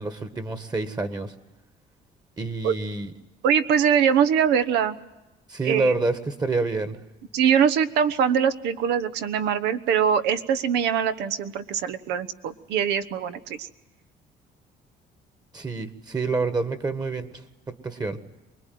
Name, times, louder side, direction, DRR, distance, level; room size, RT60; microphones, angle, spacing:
voice 1, 0.0-1.3 2.4-3.1 5.5-7.0 15.5-17.4 17.7-18.2, right 3 dB, 25° right, 12 dB, 1.6 m, -27 dB
voice 2, 3.4-5.0 5.6-5.9 7.3-13.7, right 8 dB, 85° right, 12 dB, 1.2 m, -22 dB
24.5 x 20.5 x 9.4 m, 1.0 s
cardioid pair, 110°, 17 cm